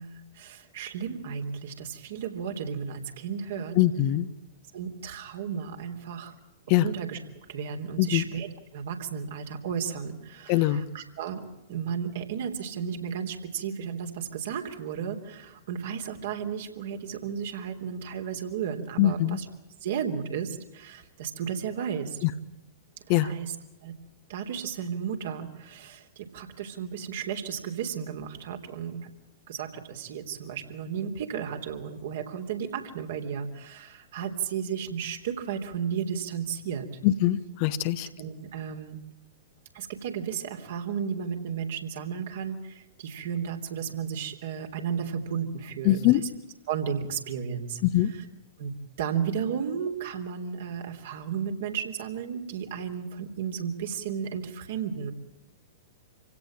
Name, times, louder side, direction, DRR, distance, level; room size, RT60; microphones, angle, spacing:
voice 1, 0.0-3.8 4.7-6.3 6.7-7.2 7.5-8.5 8.7-11.4 11.7-19.5 19.8-22.2 23.1-23.5 23.8-23.9 24.3-29.1 29.5-36.9 38.2-39.0 39.7-46.3 46.7-47.8 48.1-48.2 48.6-55.1, right 7 dB, 55° right, 4 dB, 3.4 m, -34 dB
voice 2, 3.8-4.3 6.7-6.9 8.0-8.2 10.5-10.8 19.0-19.4 22.2-22.3 23.1-23.3 37.0-38.1 45.8-46.2 47.9-48.1, left 14 dB, 45° left, 12 dB, 1.3 m, -22 dB
27.0 x 17.0 x 8.9 m, 0.99 s
figure-of-eight pair, 100°, 0 cm